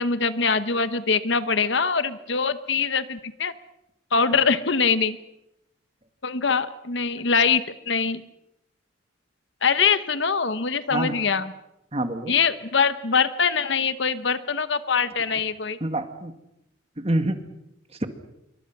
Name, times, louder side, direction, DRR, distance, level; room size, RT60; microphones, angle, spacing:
voice 1, 0.0-3.5 4.1-5.2 6.2-8.2 9.6-11.5 12.3-15.8, left 5 dB, 60° left, 12 dB, 1.1 m, -23 dB
voice 2, 11.9-12.3 15.3-15.4 15.8-16.3 17.0-17.4 17.9-18.1, right 1 dB, 30° right, 7 dB, 1.9 m, -27 dB
27.5 x 23.5 x 6.1 m, 0.87 s
head